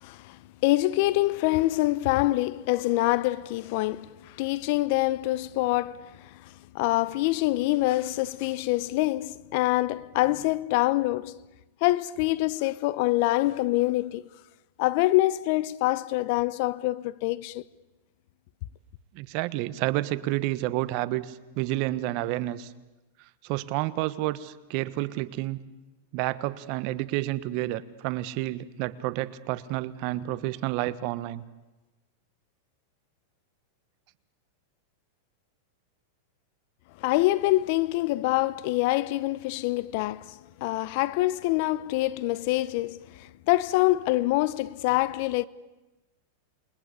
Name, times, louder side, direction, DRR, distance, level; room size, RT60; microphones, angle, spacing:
voice 1, 0.0-11.3 11.8-14.2 14.8-17.6 37.0-45.5, left 18 dB, 55° left, 0.9 m, -25 dB
voice 2, 19.1-22.7 23.4-25.6 26.1-31.4, right 16 dB, 50° right, 1.3 m, -30 dB
28.5 x 22.0 x 8.4 m
supercardioid pair, 130°, 0 cm